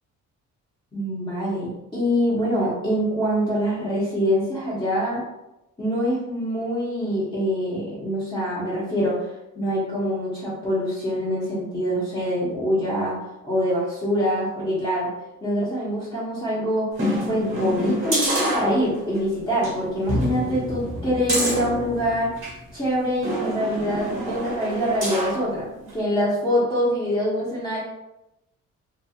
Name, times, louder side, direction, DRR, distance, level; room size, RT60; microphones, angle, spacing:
voice 1, 0.9-5.2 5.8-9.3 9.5-13.1 13.4-15.1 15.4-16.9 17.3-22.3 22.7-27.8, equal, 15° left, -9 dB, 1.0 m, -24 dB
sound 1, 16.9-19.2 19.6-19.7 20.1-22.6 23.2-25.4 25.9-26.0, equal, 45° right, 1.4 m, -27 dB
2.9 x 2.4 x 2.4 m, 0.92 s
cardioid pair, 90°, 30 cm